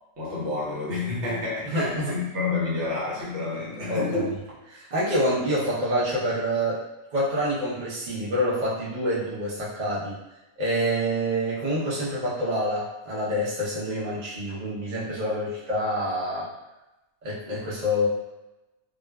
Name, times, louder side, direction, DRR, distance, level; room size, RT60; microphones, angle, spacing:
voice 1, 0.2-4.3, left 3 dB, 65° right, -7 dB, 1.2 m, -29 dB
voice 2, 1.6-2.2 3.9-4.2 4.8-6.8 7.1-10.2 10.6-16.5 17.2-18.1, equal, 40° right, -8 dB, 0.7 m, -27 dB
2.4 x 2.4 x 2.2 m, 1.0 s
omnidirectional pair, 1.3 m